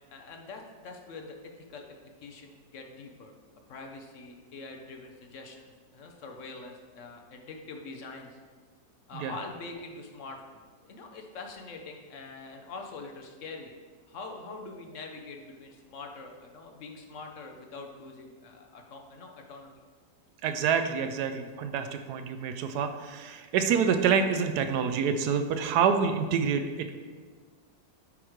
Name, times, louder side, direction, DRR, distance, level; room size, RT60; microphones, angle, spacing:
voice 1, 0.1-1.9 2.2-3.3 3.7-8.4 9.1-13.7 14.1-19.8, left 3 dB, 60° left, 3 dB, 0.9 m, -44 dB
voice 2, 20.4-26.9, right 6 dB, 80° right, 8 dB, 1.1 m, -27 dB
8.6 x 3.1 x 4.9 m, 1.5 s
omnidirectional pair, 1.7 m